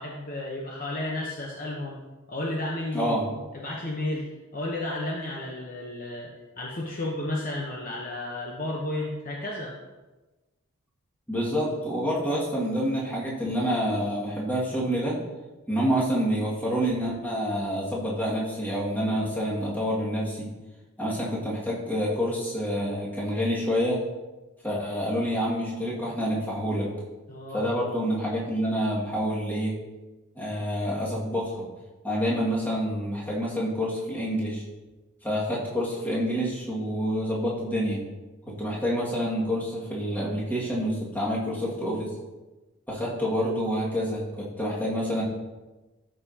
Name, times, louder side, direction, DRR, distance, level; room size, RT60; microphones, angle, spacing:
voice 1, 0.0-2.0 2.3-3.3 3.6-6.3 6.6-9.7 27.3-27.7, left 1 dB, 40° left, -2 dB, 0.9 m, -32 dB
voice 2, 2.9-3.2 11.3-15.2 15.7-20.5 21.0-24.0 24.6-26.9 27.5-29.8 30.4-31.6 32.0-34.6 35.2-38.0 38.5-42.1 42.9-45.2, equal, 10° left, -6 dB, 2.0 m, -27 dB
13.0 x 5.6 x 2.8 m, 1.1 s
head